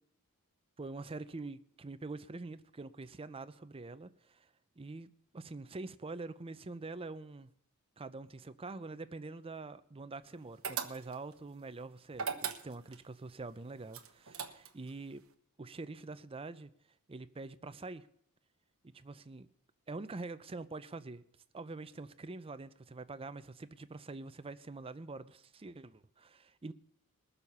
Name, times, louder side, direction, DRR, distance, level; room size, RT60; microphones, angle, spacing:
voice 1, 0.8-4.5 4.8-7.5 8.0-15.2 15.6-16.7 17.1-18.1 18.9-19.5 19.9-21.2 21.5-26.7, right 3 dB, 25° right, 0.5 m, -45 dB
sound 1, 10.6-11.3 12.1-13.0 13.9-14.9, right 6 dB, 65° right, 1.1 m, -38 dB
20.5 x 7.0 x 5.5 m
head